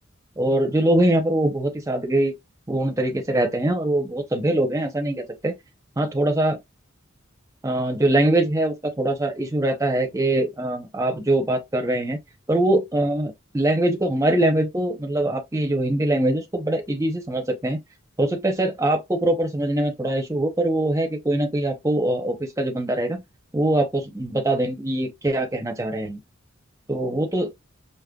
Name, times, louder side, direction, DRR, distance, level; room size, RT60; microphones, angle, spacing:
voice 1, 0.4-2.3 2.7-5.5 6.0-6.6 7.6-12.2 12.5-17.8 18.2-23.2 23.5-26.2 26.9-27.5, right 1 dB, 15° right, 0.7 m, -23 dB
5.0 x 2.1 x 2.2 m
head